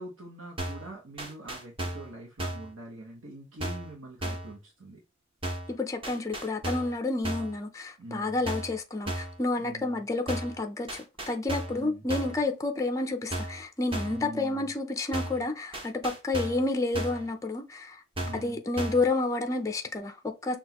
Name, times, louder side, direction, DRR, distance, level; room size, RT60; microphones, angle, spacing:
voice 1, 0.0-5.0 8.0-8.4 9.6-10.1 11.7-12.0 14.1-14.7 18.2-18.6, right 1 dB, 70° right, 1.0 m, -44 dB
sound 1, 0.6-0.9 1.2-2.1 2.4-2.7 3.6-3.9 4.2-4.5 5.4-5.7 6.0-7.0 7.2-7.6 8.5-8.8 9.1-9.4 10.3-10.6 10.9-11.8 12.1-12.4 13.3-13.6 13.9-14.2 15.1-15.5 15.7-16.7 16.9-17.3 18.2-18.5 18.8-19.1, right 1 dB, 25° right, 0.9 m, -35 dB
voice 2, 5.7-18.0 18.3-20.6, left 2 dB, 15° left, 0.5 m, -30 dB
6.0 x 2.3 x 2.9 m
head